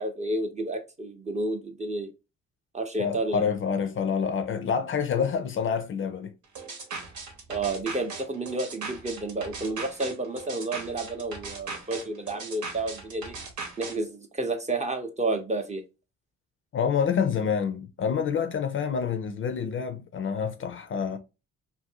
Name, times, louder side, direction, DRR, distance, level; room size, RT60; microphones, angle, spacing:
voice 1, 0.0-2.1 2.7-3.4 7.5-13.4 13.8-15.8, right 2 dB, 25° right, 0.6 m, -30 dB
voice 2, 3.0-6.3 16.7-21.2, left 6 dB, 45° left, 0.5 m, -27 dB
sound 1, 6.6-14.0, right 4 dB, 75° right, 1.0 m, -38 dB
2.6 x 2.5 x 2.7 m
cardioid pair, 90°, 30 cm